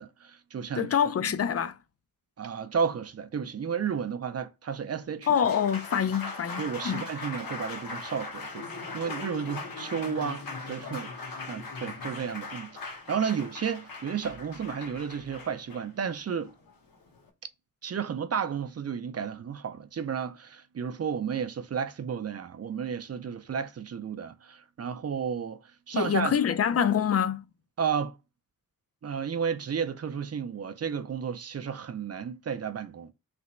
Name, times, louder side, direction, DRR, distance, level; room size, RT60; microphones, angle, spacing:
voice 1, 0.0-0.9 2.4-5.3 6.6-8.7 8.9-16.5 17.8-26.3 27.8-28.1 29.0-33.1, right 7 dB, 45° right, 0.5 m, -32 dB
voice 2, 0.8-1.8 5.3-7.1 25.9-27.4, left 8 dB, 45° left, 0.4 m, -26 dB
Applause, 5.0-17.3, left 3 dB, 75° left, 1.2 m, -40 dB
3.4 x 2.9 x 4.2 m
wide cardioid pair, 140°, 35 cm